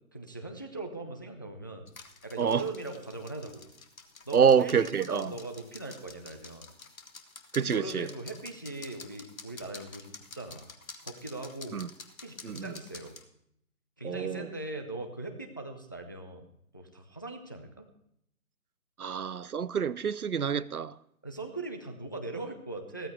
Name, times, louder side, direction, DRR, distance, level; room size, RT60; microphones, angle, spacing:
voice 1, 0.1-1.9 2.2-3.7 4.3-6.7 7.6-10.7 11.0-11.8 12.2-13.2 14.0-16.5 16.7-17.9 21.2-23.1, right 2 dB, 15° left, 0.5 m, -40 dB
sound 1, 1.9-13.2, left 4 dB, 70° left, 1.6 m, -49 dB
voice 2, 4.3-5.3 7.5-8.1 11.7-11.9 12.4-12.7 14.0-14.5 19.0-20.9, right 7 dB, 80° right, 0.7 m, -27 dB
15.5 x 14.0 x 3.3 m
figure-of-eight pair, 135°, 44 cm